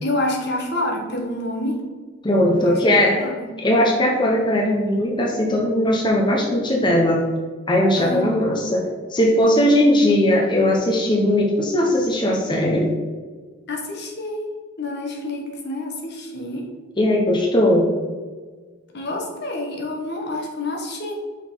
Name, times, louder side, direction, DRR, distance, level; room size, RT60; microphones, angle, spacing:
voice 1, 0.0-1.8 2.6-3.5 8.0-8.3 9.4-9.7 13.7-14.4 14.8-16.7 18.9-21.2, left 1 dB, 60° left, 1 dB, 1.2 m, -28 dB
voice 2, 2.2-3.2 3.6-7.2 7.7-8.8 9.1-12.9 17.0-17.9, left 1 dB, 25° left, -1 dB, 0.8 m, -18 dB
5.7 x 4.3 x 4.4 m, 1.4 s
head